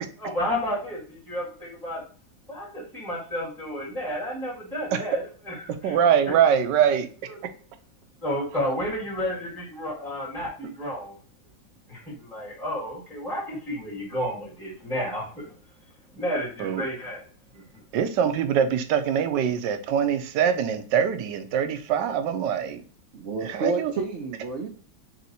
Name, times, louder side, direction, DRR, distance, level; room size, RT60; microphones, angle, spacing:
voice 1, 0.2-2.0 2.5-5.6 5.8-6.0 6.3-6.4 7.3-7.4 8.2-11.2 11.9-15.5 16.1-17.2 17.5-17.6, equal, ahead, -6 dB, 1.6 m, -31 dB
voice 2, 5.8-7.1 16.6-16.8 17.9-22.8 23.5-23.9, right 8 dB, 80° right, 8 dB, 1.2 m, -23 dB
voice 3, 23.1-24.7, right 4 dB, 60° right, 2 dB, 0.8 m, -30 dB
3.4 x 2.8 x 4.0 m, 0.40 s
omnidirectional pair, 1.9 m